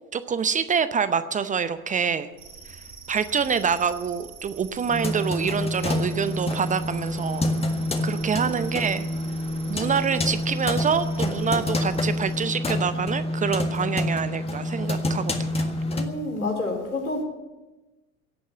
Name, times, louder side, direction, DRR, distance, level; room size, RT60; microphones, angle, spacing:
voice 1, 0.1-2.3 3.1-7.5 8.0-9.1 9.7-15.7, right 6 dB, 20° right, 13 dB, 0.7 m, -26 dB
sound 1, 2.4-12.5, right 6 dB, 50° right, 4.2 m, -45 dB
sound 2, 4.9-16.0, left 1 dB, 15° left, 1.7 m, -27 dB
voice 2, 15.9-17.2, left 2 dB, 85° left, 2 dB, 3.9 m, -28 dB
16.5 x 8.7 x 9.7 m, 1.1 s
figure-of-eight pair, 75°, 42 cm